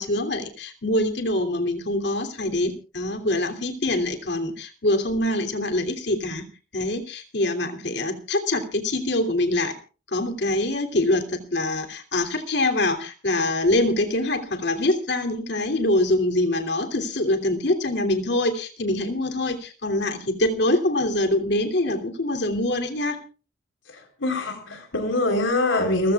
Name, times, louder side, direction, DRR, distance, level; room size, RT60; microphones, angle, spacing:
voice 1, 0.0-6.4 6.7-9.7 10.1-23.2, left 1 dB, 60° left, 6 dB, 3.0 m, -24 dB
voice 2, 23.9-26.1, left 2 dB, 80° left, 5 dB, 4.0 m, -24 dB
29.0 x 15.5 x 2.4 m, 0.35 s
head